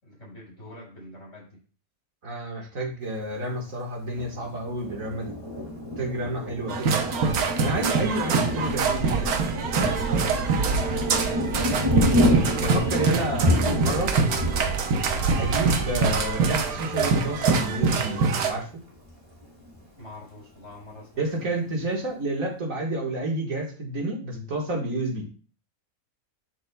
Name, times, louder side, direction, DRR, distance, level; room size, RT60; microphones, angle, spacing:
voice 1, 0.0-1.6 10.6-12.1 20.0-21.5, left 1 dB, 55° left, -4 dB, 5.1 m, -45 dB
voice 2, 2.2-5.3 6.0-7.1 7.6-9.4 9.7-10.1 12.6-14.1 15.4-18.8 21.2-25.3, right 1 dB, 65° right, 0 dB, 2.1 m, -30 dB
Thunder, 4.1-18.5 19.0-19.1 19.4-20.0, left 1 dB, 20° right, 2.3 m, -29 dB
sound 1, 6.7-18.5, right 5 dB, 85° right, 1.4 m, -24 dB
11.0 x 6.4 x 2.3 m, 0.39 s
omnidirectional pair, 1.5 m